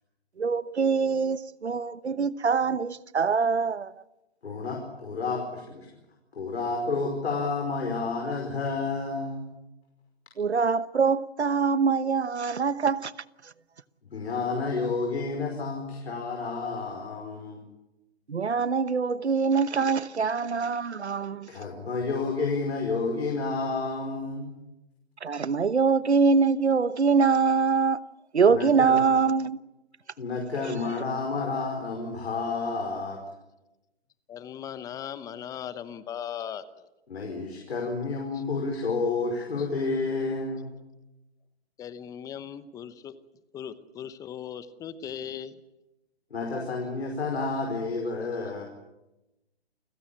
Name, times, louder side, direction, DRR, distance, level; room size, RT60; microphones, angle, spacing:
voice 1, 0.4-3.9 10.4-13.1 18.3-21.5 25.2-28.0 28.3-29.6, right 5 dB, 85° right, 1.1 m, -24 dB
voice 2, 4.4-5.9 6.3-9.5 14.1-17.6 21.5-24.5 28.5-29.0 30.2-33.2 37.1-40.7 46.3-48.6, left 3 dB, 70° left, 5.3 m, -30 dB
voice 3, 34.3-36.9 38.3-38.4 39.6-39.7 41.8-43.1 43.5-45.6, left 9 dB, 10° left, 0.9 m, -38 dB
29.0 x 16.0 x 8.8 m
figure-of-eight pair, 135°, 33 cm